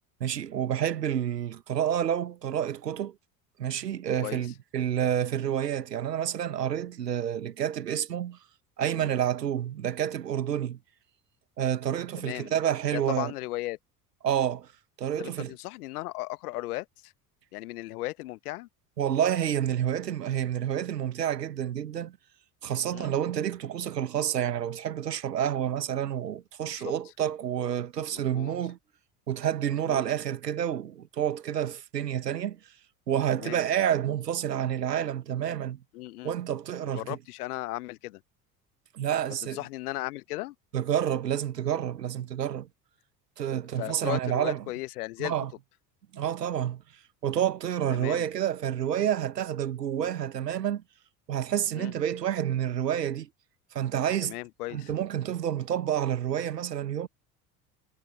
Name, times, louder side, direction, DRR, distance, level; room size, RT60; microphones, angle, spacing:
voice 1, 0.2-3.1 3.6-8.4 8.8-10.8 11.6-13.3 14.2-14.7 15.0-15.5 19.0-22.2 22.6-28.8 29.3-32.6 33.1-35.8 36.2-37.2 38.9-39.6 40.7-42.7 43.4-44.6 45.2-45.5 46.1-46.8 47.2-50.8 51.3-53.3 53.7-54.3 54.7-57.1, right 10 dB, 80° right, 1.5 m, -29 dB
voice 2, 12.2-12.5 12.9-13.8 15.2-17.1 17.5-18.7 22.9-23.1 26.8-26.9 28.1-28.5 29.9-30.0 33.4-33.6 35.9-36.3 36.8-38.2 39.4-40.5 43.8-45.3 47.9-48.2 50.0-50.1 51.7-51.9 54.2-54.9, left 18 dB, 65° left, 1.3 m, -36 dB
figure-of-eight pair, 65°, 48 cm